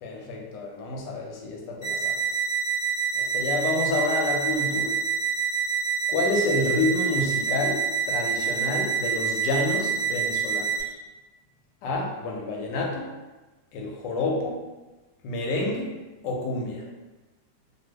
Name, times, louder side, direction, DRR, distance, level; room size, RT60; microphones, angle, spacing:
voice 1, 0.0-2.2 3.2-5.0 6.1-11.0 11.8-13.1 13.7-14.6 15.2-16.0 16.2-16.8, left 2 dB, 80° left, -1 dB, 1.2 m, -28 dB
sound 1, 1.8-10.8, right 6 dB, 5° right, 0.7 m, -27 dB
2.6 x 2.6 x 3.1 m, 1.1 s
omnidirectional pair, 2.0 m